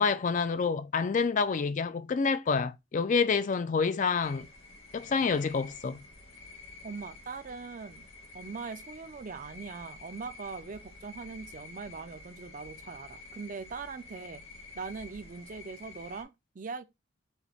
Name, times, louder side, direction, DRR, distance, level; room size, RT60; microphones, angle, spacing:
voice 1, 0.0-4.5 4.9-6.0, left 5 dB, 35° left, 0.3 m, -28 dB
sound 1, 4.2-16.2, left 3 dB, 70° left, 1.7 m, -49 dB
voice 2, 6.8-8.1 8.3-14.4 14.7-16.9, right 4 dB, 40° right, 0.5 m, -41 dB
5.6 x 2.2 x 4.1 m
head